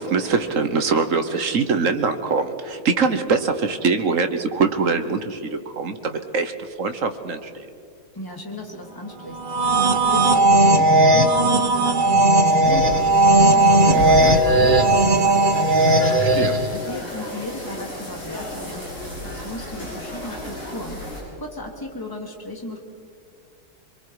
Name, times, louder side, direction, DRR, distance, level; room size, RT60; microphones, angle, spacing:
voice 1, 0.0-7.7 14.0-14.4 16.2-16.6, right 4 dB, 45° right, 8 dB, 1.2 m, -23 dB
voice 2, 8.1-15.7 16.4-22.8, left 1 dB, 10° left, 2 dB, 2.4 m, -36 dB
sound 1, 9.4-16.8, right 2 dB, 80° right, 0.4 m, -16 dB
sound 2, 12.6-21.2, left 1 dB, 55° left, 7.4 m, -33 dB
27.0 x 22.5 x 4.8 m, 2.3 s
omnidirectional pair, 2.2 m